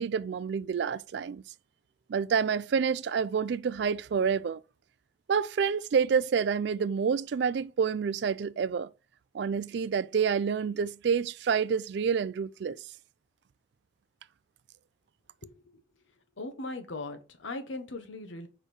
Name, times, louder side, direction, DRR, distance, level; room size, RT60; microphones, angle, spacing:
voice 1, 0.0-1.4 2.1-4.6 5.3-8.9 9.3-12.8, right 6 dB, 60° right, 0.3 m, -28 dB
voice 2, 15.4-15.8 16.4-18.5, left 2 dB, 75° left, 1.1 m, -39 dB
5.0 x 4.3 x 4.9 m
head